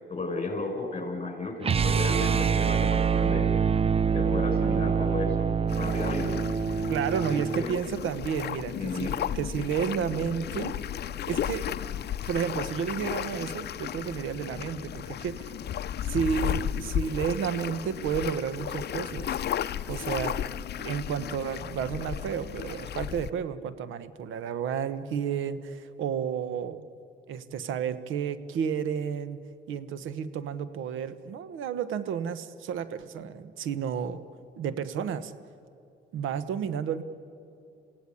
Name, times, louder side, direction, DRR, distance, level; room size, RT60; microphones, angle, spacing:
voice 1, 0.1-3.5 4.1-6.4 7.1-7.8 8.7-9.2 11.7-11.9, left 2 dB, 30° left, 3 dB, 6.4 m, -34 dB
sound 1, 1.6-7.7, right 6 dB, 30° right, 0.5 m, -25 dB
lake boadella waves, 5.7-23.3, left 10 dB, 55° left, 0.7 m, -34 dB
voice 2, 6.9-10.7 11.3-11.7 12.3-15.5 16.1-19.4 19.9-20.4 20.8-26.8 27.3-29.4 29.7-34.2 34.6-35.3 36.1-37.0, right 7 dB, 85° right, 13 dB, 1.2 m, -31 dB
28.5 x 17.0 x 9.8 m, 2.7 s
cardioid pair, 90°, 20 cm